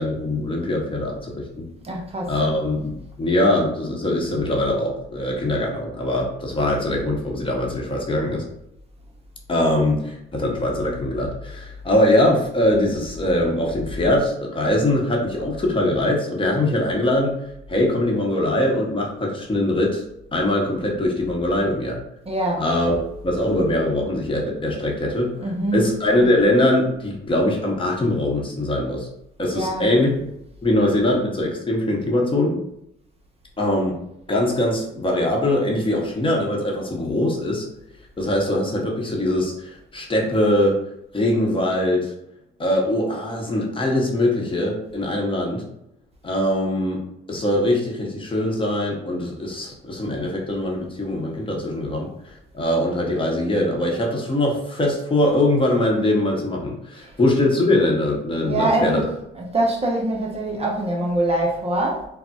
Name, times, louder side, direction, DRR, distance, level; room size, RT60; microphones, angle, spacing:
voice 1, 0.0-1.7 2.3-8.4 9.5-17.4 17.7-20.0 20.3-22.0 22.6-23.0 23.2-29.1 29.4-30.1 30.6-32.6 33.6-33.9 34.3-37.7 38.2-40.8 41.1-42.1 42.6-45.6 46.2-47.0 47.3-59.0, left 1 dB, 25° left, 0.8 m, -22 dB
voice 2, 1.8-2.3 22.3-22.6 25.4-25.8 29.5-29.9 58.4-59.1 59.4-62.1, right 1 dB, 30° right, 0.6 m, -23 dB
3.8 x 2.0 x 2.3 m
cardioid pair, 95°, 21 cm